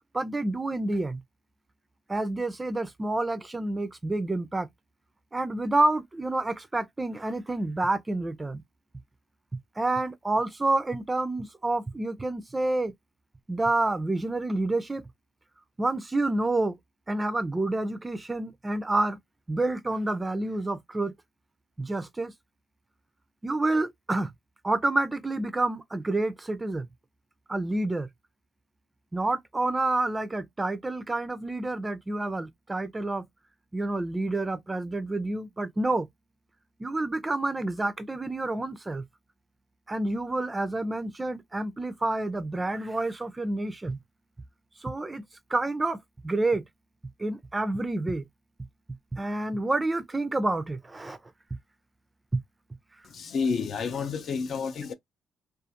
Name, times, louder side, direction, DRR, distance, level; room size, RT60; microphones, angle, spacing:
voice 1, 0.1-1.2 2.1-4.7 5.3-8.6 9.8-12.9 13.5-15.0 15.8-16.8 17.1-19.2 19.5-21.2 21.8-22.3 23.4-24.3 24.6-26.9 27.5-28.1 29.1-33.3 33.7-36.1 36.8-39.0 39.9-44.0 44.8-45.2 45.5-46.6 47.2-48.2 49.1-51.2 52.3-52.4, right 2 dB, 20° right, 0.4 m, -28 dB
voice 2, 53.0-54.9, left 5 dB, 60° left, 0.5 m, -30 dB
2.4 x 2.4 x 2.7 m
cardioid pair, 90°, 0 cm